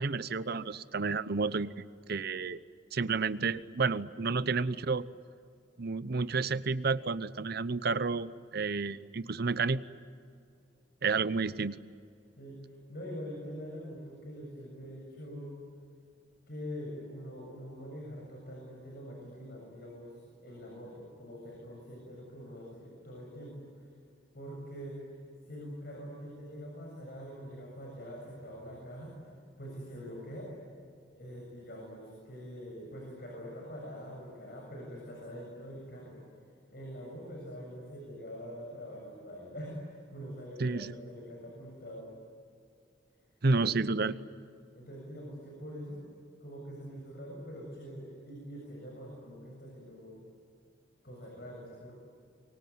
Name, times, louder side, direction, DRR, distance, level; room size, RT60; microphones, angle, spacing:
voice 1, 0.0-1.7 2.1-2.6 2.9-5.1 5.8-9.8 11.0-11.8 40.6-40.9 43.4-44.1, right 4 dB, 60° right, 15 dB, 0.8 m, -30 dB
voice 2, 12.4-15.6 16.5-23.9 24.3-25.2 25.5-29.1 29.6-30.5 31.1-36.2 36.7-42.1 43.6-44.0 44.7-46.0 46.4-50.3 51.0-52.0, equal, 60° left, -2 dB, 7.2 m, -44 dB
24.5 x 24.5 x 9.5 m, 2.3 s
head